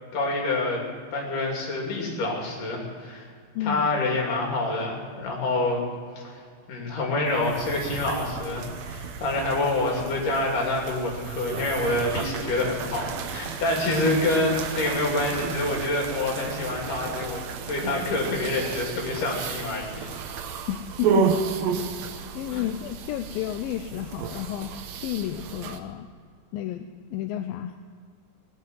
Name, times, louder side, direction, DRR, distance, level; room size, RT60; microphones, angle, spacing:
voice 1, 0.1-0.8 1.1-3.3 3.6-5.8 6.2-6.4 6.7-17.4 17.7-20.1 22.5-22.7, left 2 dB, 60° left, -1 dB, 4.3 m, -27 dB
sound 1, 7.3-25.8, right 6 dB, 70° right, 1.7 m, -32 dB
voice 2, 20.7-21.5 22.3-26.1 26.5-27.8, left 11 dB, 85° left, 7 dB, 2.4 m, -32 dB
18.0 x 8.2 x 9.3 m, 2.1 s
omnidirectional pair, 4.2 m